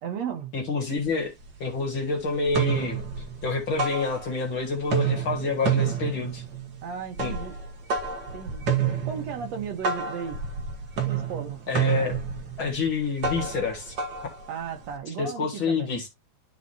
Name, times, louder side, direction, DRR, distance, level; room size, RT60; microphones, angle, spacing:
voice 1, 0.0-0.5 6.8-7.6 8.3-8.7 9.0-10.4 11.0-12.1 14.5-16.0, right 7 dB, 65° right, 2.4 m, -35 dB
voice 2, 0.5-1.3 1.6-3.0 3.4-6.4 7.2-7.3 11.7-12.2 12.6-14.0 15.1-16.1, left 4 dB, 45° left, 2.3 m, -28 dB
sound 1, 1.0-1.1 1.4-2.1 2.4-4.6 4.8-15.0, right 7 dB, 45° right, 1.7 m, -29 dB
12.5 x 4.3 x 2.7 m
omnidirectional pair, 3.4 m